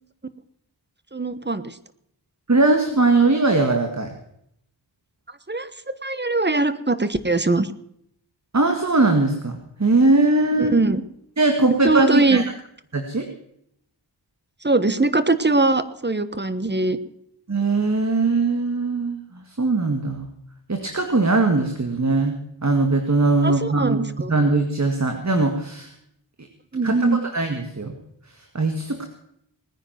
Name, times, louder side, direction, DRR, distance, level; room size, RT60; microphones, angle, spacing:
voice 1, 1.1-1.8 5.5-7.7 10.6-11.0 11.8-12.4 14.6-17.0 23.4-24.3 26.7-27.2, right 2 dB, 25° right, 13 dB, 1.2 m, -21 dB
voice 2, 2.5-4.2 8.5-10.8 11.4-12.4 12.9-13.3 17.5-19.2 19.6-20.3 20.7-24.0 24.3-25.9 26.8-27.9 28.5-29.1, right 3 dB, 40° right, 5 dB, 1.9 m, -20 dB
20.0 x 9.9 x 6.0 m, 0.72 s
cardioid pair, 45°, 43 cm